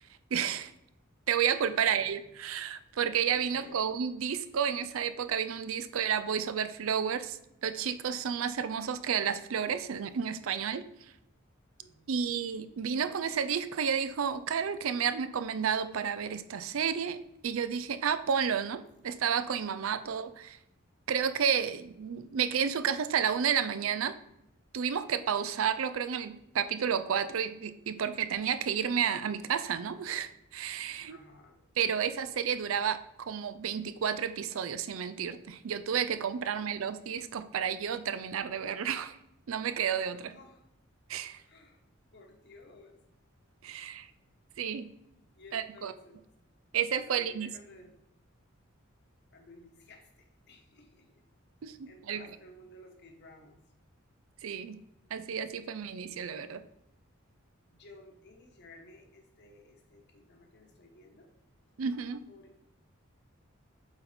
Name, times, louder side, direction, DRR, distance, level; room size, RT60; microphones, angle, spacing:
voice 1, 0.3-0.7 1.3-10.8 12.1-20.6 21.1-24.2 24.7-31.2 31.8-39.2 39.5-40.3 41.1-41.4 43.6-44.1 44.6-44.9 45.5-45.9 46.7-47.5 51.6-52.2 54.4-54.8 55.1-56.6 61.8-62.2, right 7 dB, 80° right, 11 dB, 0.5 m, -31 dB
voice 2, 1.7-2.2 3.3-3.8 11.8-12.2 31.1-31.6 36.5-36.9 40.3-40.6 41.5-41.8 42.1-43.0 45.4-46.2 47.0-48.0 49.3-50.1 50.5-51.2 51.9-53.6 56.0-56.1 57.7-61.3 62.3-62.6, left 1 dB, 55° left, 2 dB, 1.2 m, -55 dB
7.7 x 4.1 x 4.3 m, 0.83 s
head